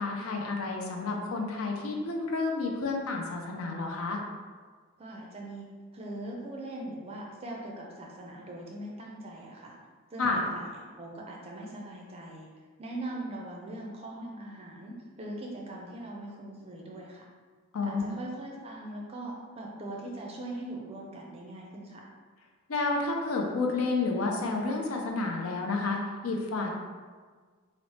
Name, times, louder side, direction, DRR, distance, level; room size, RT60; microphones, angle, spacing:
voice 1, 0.0-4.2 10.2-10.4 17.7-18.2 22.7-26.7, left 3 dB, 75° left, 1 dB, 0.5 m, -30 dB
voice 2, 5.0-9.8 10.1-12.5 12.8-17.2 17.8-22.1, right 1 dB, 25° right, -2 dB, 0.4 m, -41 dB
3.1 x 2.0 x 4.0 m, 1.5 s
head